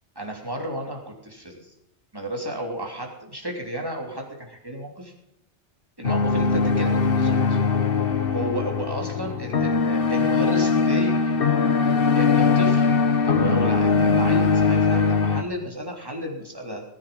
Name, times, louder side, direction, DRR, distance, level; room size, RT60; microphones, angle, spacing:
voice 1, 0.1-1.7 2.1-5.1 6.0-7.6 8.3-11.3 12.1-12.9 13.2-16.8, equal, 20° right, 0 dB, 3.4 m, -33 dB
sound 1, 6.0-15.4, left 5 dB, 55° left, 1.3 m, -21 dB
19.0 x 10.0 x 5.4 m, 0.85 s
omnidirectional pair, 1.2 m